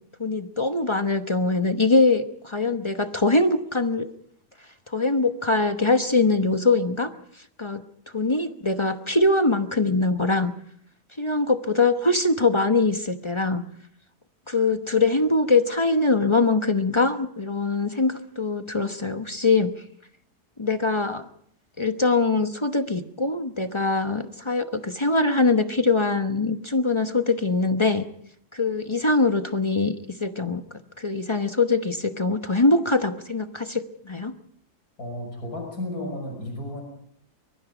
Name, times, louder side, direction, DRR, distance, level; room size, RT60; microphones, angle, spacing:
voice 1, 0.2-4.1 4.9-7.1 7.6-7.8 8.1-10.5 11.2-13.6 14.5-19.7 20.6-21.2 21.8-28.1 28.5-30.6 31.0-34.3, left 3 dB, 25° left, 8 dB, 0.8 m, -22 dB
voice 2, 35.0-36.8, left 1 dB, 60° left, 3 dB, 6.2 m, -33 dB
24.0 x 22.5 x 5.1 m, 0.66 s
omnidirectional pair, 1.8 m